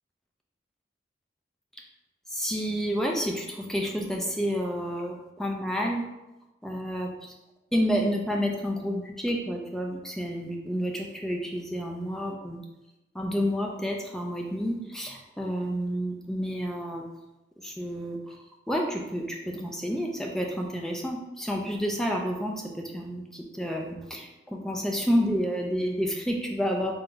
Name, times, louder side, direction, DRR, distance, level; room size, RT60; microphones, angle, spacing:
voice 1, 2.3-6.0 6.6-7.3 7.7-12.6 13.1-17.0 17.6-18.4 18.7-26.9, equal, 5° left, 0 dB, 0.4 m, -30 dB
3.9 x 2.3 x 3.8 m, 0.99 s
head